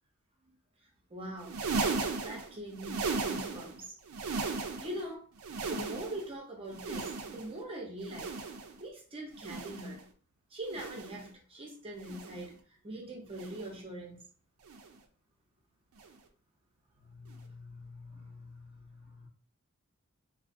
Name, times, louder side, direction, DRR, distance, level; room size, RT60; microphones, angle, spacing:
voice 1, 1.1-1.6 2.2-3.9 4.8-5.3 5.6-8.3 8.8-10.1 10.5-14.2 17.0-19.3, right 1 dB, 25° right, 0 dB, 0.6 m, -43 dB
sound 1, 1.4-3.8 4.1-5.0 5.4-6.3 6.7-7.6 8.0-8.8 9.3-10.0 10.7-11.2 12.0-12.5 13.3-13.8 14.7-15.0 16.0-16.2 17.3-17.4, right 4 dB, 70° right, 0.4 m, -36 dB
2.4 x 2.0 x 2.5 m, 0.42 s
head